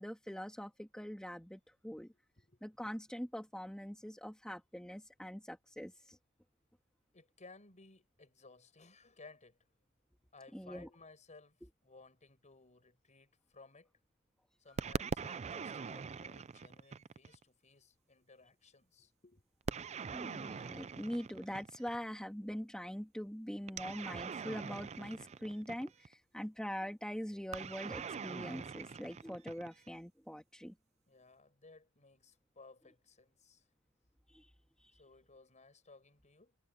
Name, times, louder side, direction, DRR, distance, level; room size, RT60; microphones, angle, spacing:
voice 1, 0.0-2.1 2.6-6.2 10.5-10.9 14.7-14.8 20.1-30.7 34.3-34.5 34.8-34.9, equal, 5° left, 2.4 m, -43 dB
voice 2, 7.1-9.6 10.3-13.9 14.6-19.4 31.1-33.6 34.9-36.6, left 3 dB, 35° left, 5.1 m, -59 dB
sound 1, 14.8-17.4 19.7-22.0 23.7-26.1 27.5-30.0, right 5 dB, 30° right, 0.4 m, -42 dB
head